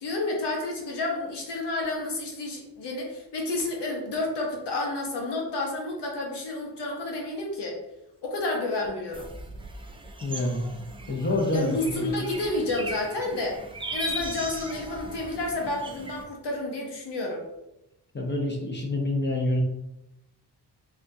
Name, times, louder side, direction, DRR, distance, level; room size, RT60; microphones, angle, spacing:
voice 1, 0.0-7.8 8.2-9.3 11.5-13.6 13.9-17.4, left 2 dB, 75° left, 0 dB, 0.8 m, -30 dB
sound 1, 9.1-16.2, right 1 dB, 15° right, 0.3 m, -38 dB
voice 2, 10.2-10.6 11.1-12.1 18.1-19.6, left 2 dB, 25° left, 0 dB, 0.6 m, -27 dB
3.4 x 2.3 x 2.7 m, 0.89 s
cardioid pair, 75°, 41 cm